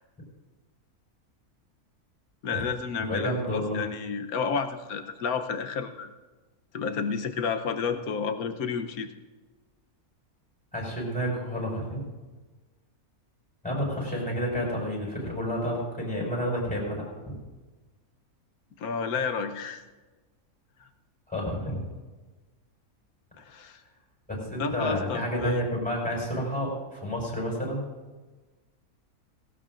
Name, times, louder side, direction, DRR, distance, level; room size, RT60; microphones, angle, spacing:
voice 1, 2.4-6.1 6.7-9.1 18.8-19.8 23.4-23.8 24.6-25.6, left 5 dB, 70° left, 7 dB, 1.3 m, -31 dB
voice 2, 3.0-3.8 10.7-12.1 13.6-17.4 21.3-21.8 24.3-27.8, equal, 5° left, -3 dB, 5.4 m, -30 dB
18.5 x 17.5 x 2.5 m, 1.3 s
omnidirectional pair, 1.6 m